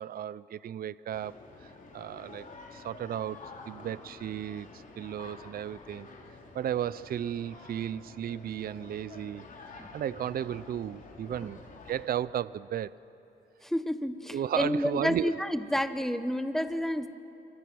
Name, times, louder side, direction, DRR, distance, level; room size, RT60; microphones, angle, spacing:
voice 1, 0.0-1.3 1.6-6.1 6.5-9.5 9.7-11.6 11.9-13.0 14.3-15.3, right 10 dB, 50° right, 0.5 m, -34 dB
sound 1, 1.1-12.1, left 3 dB, 40° left, 3.6 m, -49 dB
voice 2, 13.6-17.1, equal, ahead, 1.2 m, -30 dB
29.0 x 25.0 x 6.2 m
cardioid pair, 90°, 20 cm